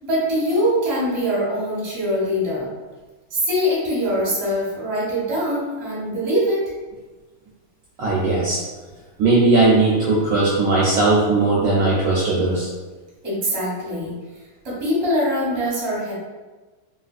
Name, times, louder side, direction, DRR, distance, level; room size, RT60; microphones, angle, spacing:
voice 1, 0.0-2.7 3.3-6.6 13.2-14.1 14.6-16.1, equal, 20° right, -7 dB, 0.7 m, -23 dB
voice 2, 8.0-8.6 9.2-12.7, right 3 dB, 70° right, -6 dB, 1.1 m, -18 dB
3.2 x 2.8 x 2.4 m, 1.3 s
omnidirectional pair, 2.4 m